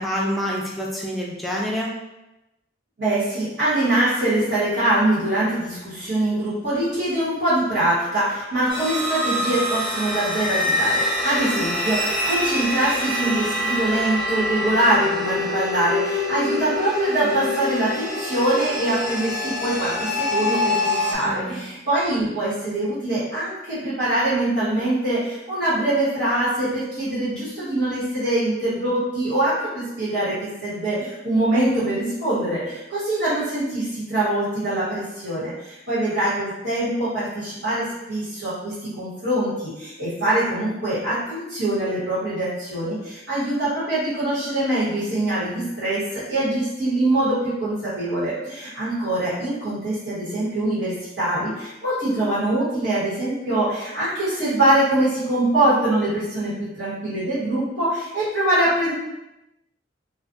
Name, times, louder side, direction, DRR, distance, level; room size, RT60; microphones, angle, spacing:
voice 1, 0.0-1.9 21.2-21.6, equal, ahead, -4 dB, 0.3 m, -27 dB
voice 2, 3.0-58.9, right 1 dB, 75° right, -12 dB, 1.2 m, -23 dB
sound 1, 8.7-21.1, left 1 dB, 25° right, 1.0 m, -25 dB
2.3 x 2.3 x 2.6 m, 0.96 s
head